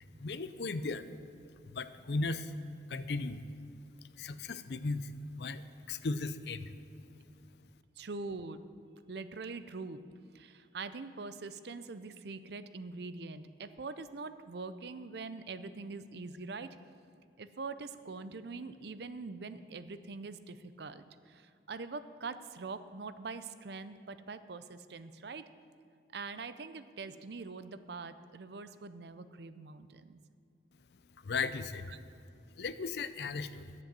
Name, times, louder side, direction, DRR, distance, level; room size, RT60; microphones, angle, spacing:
voice 1, 0.2-1.1 1.6-2.5 2.9-3.4 4.2-5.6 5.9-6.8 31.2-32.0 32.6-33.7, left 3 dB, 65° left, 13 dB, 0.5 m, -36 dB
voice 2, 8.0-8.6 9.1-10.0 10.3-16.8 17.4-25.4 26.1-30.2 31.9-32.0, right 4 dB, 65° right, 12 dB, 0.5 m, -43 dB
11.5 x 7.7 x 7.5 m, 2.4 s
head